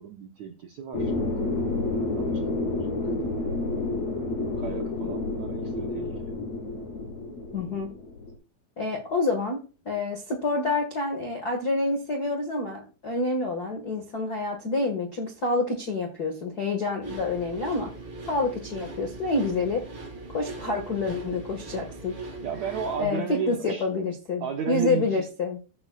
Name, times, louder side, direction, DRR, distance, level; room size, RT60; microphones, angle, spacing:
voice 1, 0.0-1.8 2.1-3.5 4.6-6.2 22.4-23.8 24.4-25.2, right 7 dB, 80° right, 4 dB, 1.6 m, -35 dB
sound 1, 0.9-8.3, left 2 dB, 50° left, 3.2 m, -30 dB
voice 2, 7.5-7.9 8.8-17.9 18.3-19.9 20.3-22.1 23.0-25.6, left 3 dB, 70° left, 3 dB, 0.9 m, -28 dB
sound 2, 17.0-23.1, right 2 dB, 35° right, 4.7 m, -39 dB
15.0 x 7.4 x 2.4 m, 0.34 s
omnidirectional pair, 4.7 m